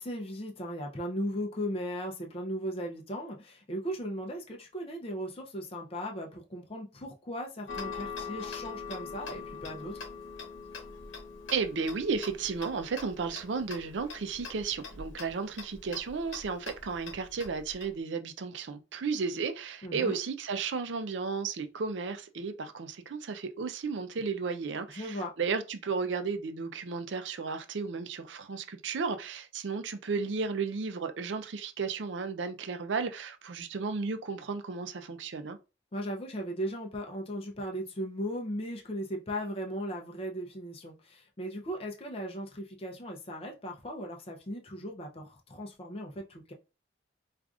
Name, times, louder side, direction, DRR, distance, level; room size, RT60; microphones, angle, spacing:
voice 1, 0.0-10.0 19.8-20.2 24.9-25.4 35.9-46.5, equal, 30° left, 0.5 m, -37 dB
Tick-tock, 7.7-17.9, left 5 dB, 90° left, 0.9 m, -43 dB
voice 2, 11.5-35.6, right 5 dB, 70° right, 0.5 m, -34 dB
4.8 x 2.5 x 2.4 m
head